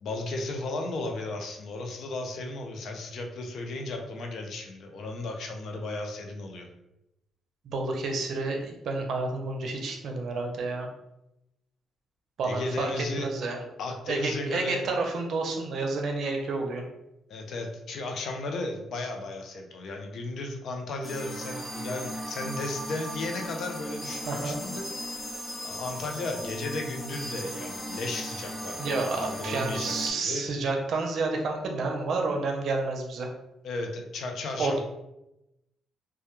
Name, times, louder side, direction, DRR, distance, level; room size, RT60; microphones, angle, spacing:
voice 1, 0.0-6.7 12.4-13.3 13.8-14.8 17.3-24.8 25.6-30.4 33.6-34.8, left 2 dB, 65° left, 3 dB, 0.4 m, -35 dB
voice 2, 7.6-10.9 12.4-13.6 14.1-16.8 24.3-24.6 28.8-33.3 34.6-34.8, right 3 dB, 65° right, 2 dB, 0.5 m, -30 dB
sound 1, 21.0-30.1, equal, 5° left, 0.5 m, -37 dB
2.2 x 2.1 x 2.9 m, 0.88 s
cardioid pair, 90°, 0 cm